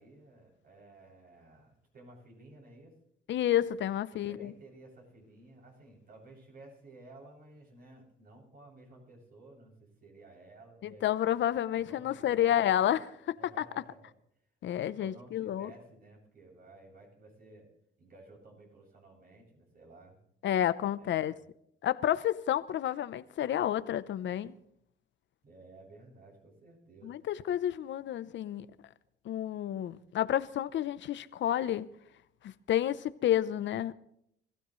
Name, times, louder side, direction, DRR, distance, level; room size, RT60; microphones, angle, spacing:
voice 1, 0.0-2.9 4.1-11.1 11.7-12.6 13.4-14.1 15.0-17.7 18.0-20.2 21.0-21.4 25.4-27.1 29.9-30.0, right 2 dB, 50° right, 7.2 m, -55 dB
voice 2, 3.3-4.5 10.8-13.6 14.6-15.7 20.4-21.3 21.8-24.6 27.0-28.7 29.2-31.9 32.4-33.9, left 11 dB, 70° left, 0.8 m, -30 dB
25.5 x 15.5 x 3.2 m
cardioid pair, 90°, 20 cm